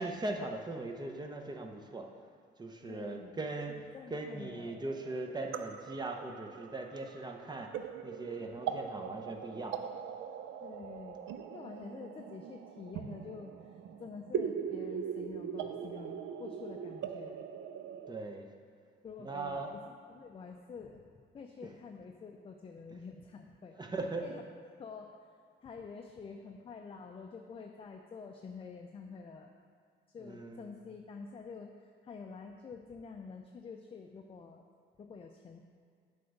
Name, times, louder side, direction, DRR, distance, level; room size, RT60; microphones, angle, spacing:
voice 1, 0.0-2.1 2.6-3.8 4.1-7.7 8.0-9.8 18.1-18.5 19.2-19.7 23.8-24.4 30.2-30.7, right 2 dB, 20° right, 3 dB, 0.7 m, -39 dB
voice 2, 2.9-3.4 3.9-4.8 10.6-11.2 11.5-17.4 19.0-23.8 24.2-24.4 24.8-25.2 25.6-29.5 30.1-34.6 35.0-35.6, left 5 dB, 30° left, 3 dB, 0.4 m, -48 dB
sound 1, 4.4-18.2, right 8 dB, 70° right, 0.4 m, -41 dB
7.6 x 3.4 x 5.3 m, 2.3 s
cardioid pair, 90°, 20 cm